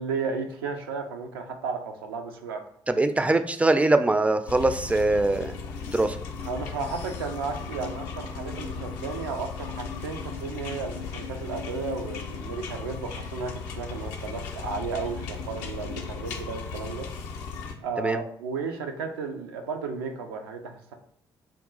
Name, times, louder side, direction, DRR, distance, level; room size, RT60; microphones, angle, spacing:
voice 1, 0.0-2.6 6.4-17.1 17.8-20.9, right 5 dB, 80° right, 5 dB, 0.4 m, -34 dB
voice 2, 2.9-5.5 5.9-6.2 18.0-18.2, right 2 dB, 10° right, 10 dB, 0.3 m, -22 dB
sound 1, 4.5-17.7, left 5 dB, 70° left, 0.5 m, -36 dB
3.6 x 2.3 x 3.8 m, 0.63 s
figure-of-eight pair, 45°, 12 cm